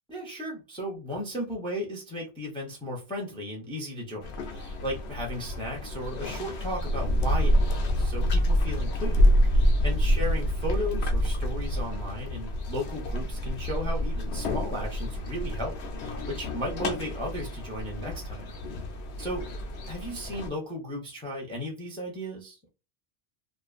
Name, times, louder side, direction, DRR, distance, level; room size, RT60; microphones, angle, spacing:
voice 1, 0.1-18.5 19.2-19.5 19.9-22.7, equal, 5° left, -2 dB, 0.6 m, -35 dB
sound 1, 4.2-20.5, equal, 85° left, 0.8 m, -27 dB
2.5 x 2.4 x 2.4 m, 0.30 s
omnidirectional pair, 1.1 m